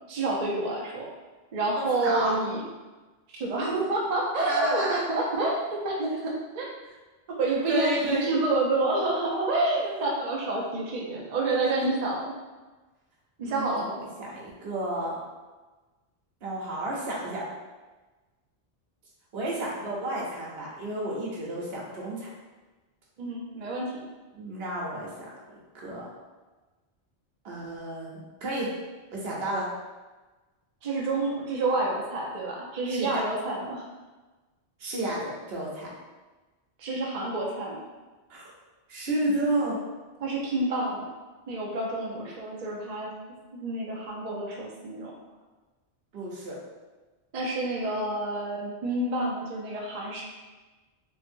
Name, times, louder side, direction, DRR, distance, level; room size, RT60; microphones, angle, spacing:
voice 1, 0.1-1.1 1.5-2.6 3.3-6.7 7.3-12.3 13.4-14.0 23.2-23.9 30.8-33.9 36.8-37.8 40.2-41.1 41.5-43.1 43.5-45.1 47.3-50.2, right 2 dB, 50° right, -3 dB, 0.5 m, -28 dB
voice 2, 1.8-2.4 4.5-5.0 7.7-8.3 9.8-10.1 11.6-11.9 13.4-15.2 16.4-17.5 19.3-22.3 24.4-25.1 25.7-26.1 27.4-28.7 29.1-29.7 32.9-33.2 34.8-35.9 38.3-38.5 38.9-39.8 46.1-46.6, right 1 dB, 65° right, -5 dB, 1.0 m, -31 dB
2.9 x 2.8 x 2.5 m, 1.2 s
omnidirectional pair, 1.1 m